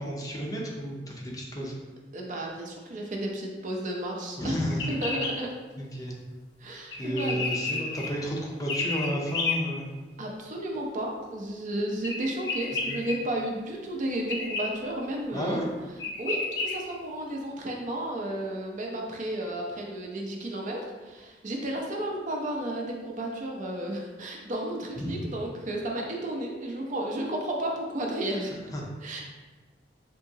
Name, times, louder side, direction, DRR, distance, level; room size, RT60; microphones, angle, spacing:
voice 1, 0.0-1.7 4.4-4.9 5.8-6.1 7.0-9.9 12.9-13.0 15.3-15.7 25.0-25.3 28.7-28.8, equal, 20° left, -2 dB, 0.5 m, -32 dB
voice 2, 2.1-4.6 4.9-5.5 6.6-7.8 10.2-15.6 16.2-28.5 29.0-29.2, right 1 dB, 45° right, 0 dB, 0.5 m, -33 dB
sound 1, 4.7-5.3 6.9-8.1 8.7-9.5 12.0-13.1 14.3-14.6 15.6-15.7 16.0-16.7, left 4 dB, 80° left, 0.6 m, -31 dB
3.5 x 2.8 x 2.7 m, 1.3 s
head